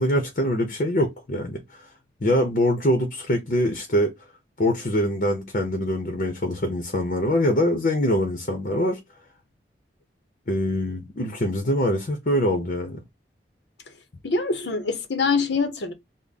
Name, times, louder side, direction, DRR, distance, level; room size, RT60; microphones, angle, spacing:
voice 1, 0.0-1.9 2.2-4.1 4.6-9.0 10.5-13.0, left 1 dB, 50° left, 0.7 m, -24 dB
voice 2, 14.2-15.9, left 4 dB, 85° left, 0.8 m, -24 dB
3.4 x 2.1 x 3.9 m
head